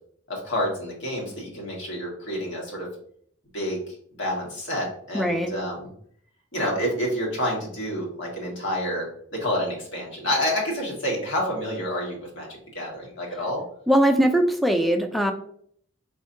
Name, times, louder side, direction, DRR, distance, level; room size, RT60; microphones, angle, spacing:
voice 1, 0.3-2.9 3.5-5.9 6.5-13.6, equal, 65° left, -3 dB, 1.7 m, -29 dB
voice 2, 5.1-5.5 13.9-15.3, right 1 dB, ahead, 4 dB, 0.4 m, -20 dB
4.9 x 3.5 x 2.8 m, 0.63 s
head